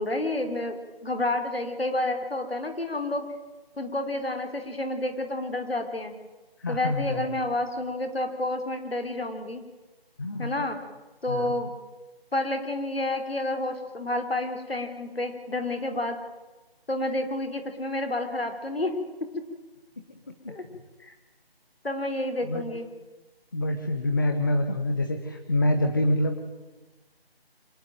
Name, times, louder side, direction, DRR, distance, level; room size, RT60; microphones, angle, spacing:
voice 1, 0.0-3.3 3.8-6.1 6.7-9.6 10.4-10.8 11.2-11.7 12.3-16.2 16.9-18.9 19.2-19.4 20.5-20.6 21.0-21.1 21.8-22.9, left 1 dB, 70° left, 7 dB, 4.3 m, -30 dB
voice 2, 6.6-7.3 10.2-10.5 11.3-11.5 20.1-20.2 20.4-20.5 22.4-22.6 23.5-26.4, left 1 dB, 20° left, 6 dB, 1.1 m, -26 dB
26.0 x 16.5 x 9.3 m, 1.2 s
figure-of-eight pair, 165°, 31 cm